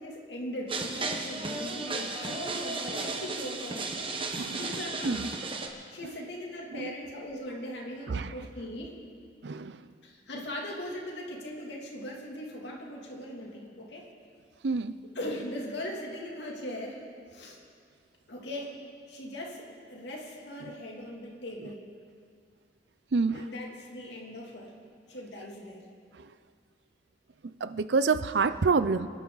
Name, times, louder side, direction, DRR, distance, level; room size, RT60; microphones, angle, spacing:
voice 1, 0.0-4.1 4.6-5.3 5.9-9.0 10.0-14.1 15.1-17.0 17.3-17.6 18.3-18.8 19.1-21.9 23.3-24.7 25.1-25.9, left 1 dB, 75° left, -1 dB, 2.8 m, -39 dB
sound 1, 0.7-5.7, right 3 dB, 30° right, 1.1 m, -34 dB
voice 2, 9.4-9.8 14.6-14.9 23.1-23.5 26.2-26.3 27.6-29.1, right 4 dB, 70° right, 13 dB, 0.5 m, -27 dB
26.5 x 11.5 x 4.0 m, 2.2 s
head